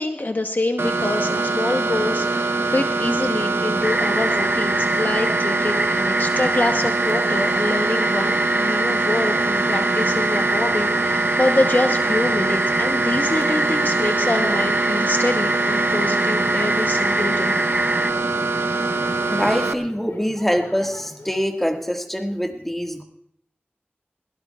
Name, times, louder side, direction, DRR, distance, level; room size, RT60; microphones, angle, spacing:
voice 1, 0.0-17.6, left 2 dB, 50° left, 5 dB, 0.9 m, -25 dB
sound 1, 0.8-19.7, right 3 dB, 80° right, 0.7 m, -23 dB
sound 2, 3.8-18.1, right 1 dB, 25° right, 0.6 m, -25 dB
sound 3, 11.6-21.4, left 1 dB, 70° left, 3.4 m, -44 dB
voice 2, 19.3-23.0, equal, 5° left, 2 dB, 1.8 m, -24 dB
20.5 x 17.5 x 2.4 m, 0.74 s
wide cardioid pair, 50°, 4 cm